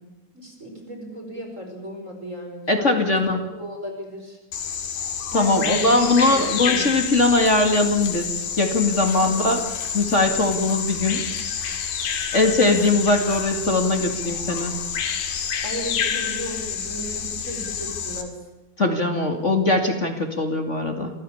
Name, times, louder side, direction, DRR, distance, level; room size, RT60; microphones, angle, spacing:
voice 1, 0.3-4.4 5.3-6.9 9.2-9.5 12.3-12.6 15.6-18.3, equal, 20° right, 2 dB, 5.0 m, -34 dB
voice 2, 2.7-3.4 5.3-9.6 9.9-11.3 12.3-14.7 18.8-21.1, left 2 dB, 25° left, 5 dB, 1.7 m, -20 dB
Bird vocalization bird call bird song, 4.5-18.2, left 7 dB, 80° left, 4.0 m, -28 dB
27.5 x 15.5 x 8.6 m, 1.1 s
omnidirectional pair, 4.2 m